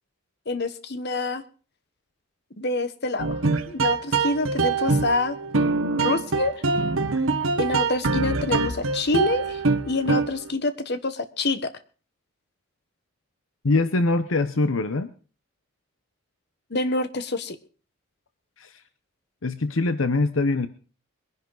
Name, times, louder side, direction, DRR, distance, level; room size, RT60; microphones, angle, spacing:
voice 1, 0.5-1.4 2.6-5.4 6.0-6.5 7.6-9.6 9.9-11.7 16.7-17.6, left 2 dB, 55° left, 1.2 m, -26 dB
sound 1, 3.2-10.5, right 4 dB, 80° right, 1.4 m, -24 dB
voice 2, 13.6-15.1 18.6-18.7 19.4-20.7, left 3 dB, 75° left, 0.9 m, -23 dB
22.0 x 11.0 x 4.0 m
head